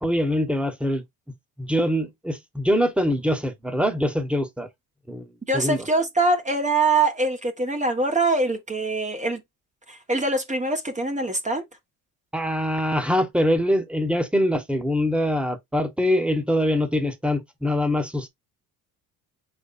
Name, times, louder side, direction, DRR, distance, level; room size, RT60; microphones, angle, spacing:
voice 1, 0.0-1.0 1.6-4.7 5.1-5.3 5.5-5.8 12.3-18.3, equal, 5° right, 1.2 m, -23 dB
voice 2, 5.5-9.4 9.9-11.6, right 2 dB, 20° right, 1.0 m, -23 dB
4.4 x 4.3 x 2.4 m
supercardioid pair, 75°, 38 cm